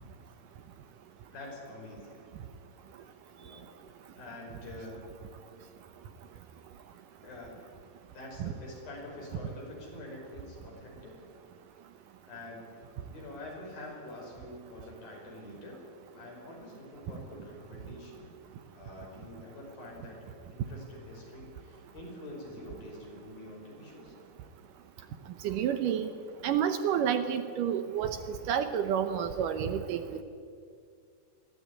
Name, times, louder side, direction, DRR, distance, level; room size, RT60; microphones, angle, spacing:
voice 1, 1.3-2.3 3.4-3.7 4.2-5.2 7.2-7.6 8.1-11.2 12.3-12.8 13.1-15.8 16.2-18.3 18.7-24.1, left 1 dB, 70° left, -2 dB, 7.3 m, -46 dB
voice 2, 25.4-26.1 26.4-30.2, right 8 dB, 70° right, 8 dB, 2.3 m, -30 dB
22.0 x 15.5 x 9.7 m, 2.3 s
omnidirectional pair, 4.3 m